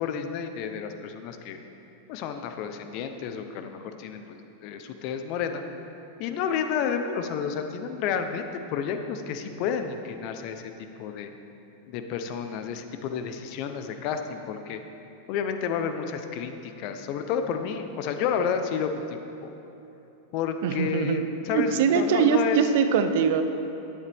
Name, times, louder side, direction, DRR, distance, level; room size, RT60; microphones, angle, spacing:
voice 1, 0.0-1.6 2.1-4.4 4.6-5.6 6.2-8.4 8.7-10.6 11.0-11.3 11.9-14.8 15.3-19.5 20.3-22.6, left 7 dB, 50° left, 7 dB, 0.8 m, -30 dB
voice 2, 20.6-23.4, right 6 dB, 65° right, 9 dB, 0.7 m, -23 dB
11.5 x 9.7 x 3.5 m, 3.0 s
supercardioid pair, 130°, 0 cm